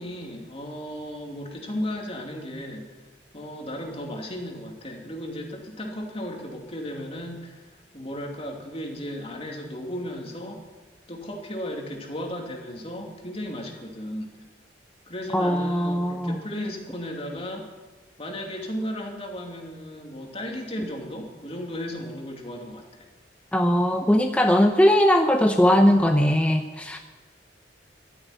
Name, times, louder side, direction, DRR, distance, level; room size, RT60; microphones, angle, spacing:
voice 1, 0.0-2.9 3.3-10.6 11.1-14.3 15.1-17.7 18.2-23.0, equal, 35° left, 1 dB, 2.6 m, -35 dB
voice 2, 15.3-16.4 23.5-27.0, equal, 10° left, 4 dB, 0.7 m, -20 dB
13.0 x 10.0 x 9.3 m, 1.3 s
head